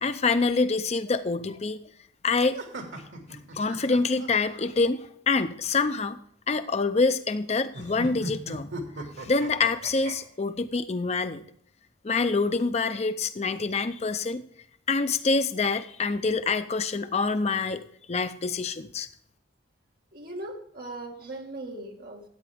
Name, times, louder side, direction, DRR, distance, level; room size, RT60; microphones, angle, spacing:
voice 1, 0.0-1.8 2.2-2.6 3.6-6.2 6.5-8.7 9.2-11.4 12.0-14.4 14.9-17.8 18.1-19.1, left 4 dB, 35° left, 11 dB, 0.5 m, -26 dB
sound 1, 2.5-4.7 7.7-10.2, right 1 dB, 80° right, 2.2 m, -38 dB
voice 2, 20.1-22.2, right 2 dB, 50° right, 1 dB, 2.1 m, -39 dB
14.0 x 8.8 x 3.5 m, 0.65 s
head